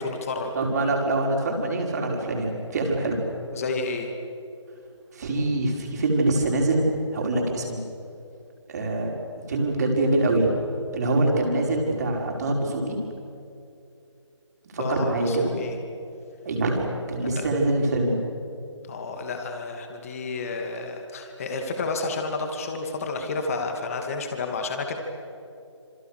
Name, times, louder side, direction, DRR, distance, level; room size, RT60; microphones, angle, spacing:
voice 1, 0.0-0.5 3.5-4.1 14.8-15.8 17.4-17.5 18.9-24.9, left 3 dB, 30° left, 4 dB, 2.6 m, -30 dB
voice 2, 0.5-3.2 5.1-6.9 7.1-7.8 8.7-9.1 9.4-10.5 10.9-13.0 14.7-15.5 16.5-18.2, right 2 dB, 35° right, 1 dB, 5.2 m, -24 dB
28.0 x 28.0 x 6.6 m, 2.6 s
figure-of-eight pair, 155°, 16 cm